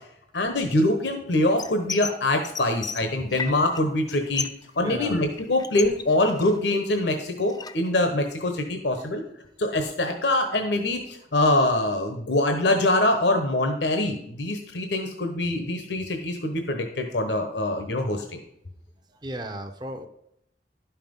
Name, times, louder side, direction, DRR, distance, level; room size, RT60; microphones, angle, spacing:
voice 1, 0.3-4.5 4.8-9.2 9.6-18.4, left 1 dB, 70° left, 5 dB, 1.1 m, -24 dB
sound 1, 1.6-2.2 2.4-3.8 4.1-4.7 4.9-6.7 7.1-7.9, left 5 dB, 20° left, 0.5 m, -34 dB
voice 2, 4.8-5.2 19.1-20.1, right 1 dB, 25° right, 5 dB, 0.7 m, -34 dB
11.5 x 5.8 x 5.3 m, 0.77 s
head